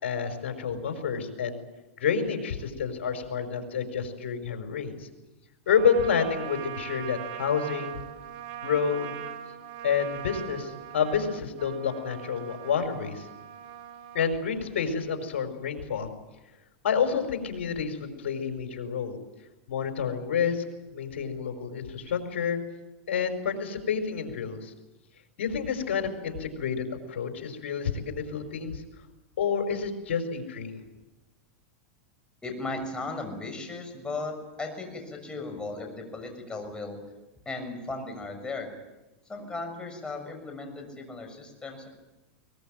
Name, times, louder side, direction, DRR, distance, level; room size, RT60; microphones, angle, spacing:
voice 1, 0.0-1.6 2.0-5.1 5.7-8.0 8.6-9.2 9.8-13.3 14.1-16.1 16.8-19.2 19.7-20.6 20.9-22.6 23.1-24.7 25.4-28.8 29.4-30.8, left 6 dB, 80° left, 6 dB, 5.1 m, -29 dB
Trumpet, 5.7-14.4, right 11 dB, 65° right, 2.8 m, -41 dB
voice 2, 32.4-37.0 37.4-38.7 39.3-41.9, left 3 dB, 15° left, 4 dB, 6.5 m, -36 dB
22.5 x 20.5 x 9.1 m, 1.1 s
hypercardioid pair, 125°, 7 cm